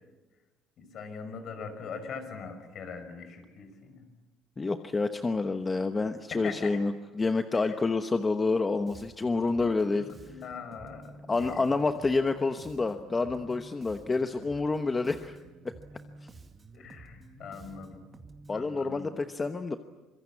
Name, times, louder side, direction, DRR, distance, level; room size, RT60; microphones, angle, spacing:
voice 1, 0.8-4.1 6.3-6.7 7.6-7.8 9.5-11.7 16.7-18.0 18.5-19.1, left 5 dB, 50° left, 8 dB, 5.4 m, -42 dB
voice 2, 4.6-10.1 11.3-15.4 18.5-19.8, left 3 dB, 20° left, 8 dB, 1.0 m, -28 dB
Bass guitar, 8.9-18.7, right 3 dB, 25° right, 2.2 m, -51 dB
25.5 x 23.0 x 8.6 m, 1.2 s
cardioid pair, 125°, 0 cm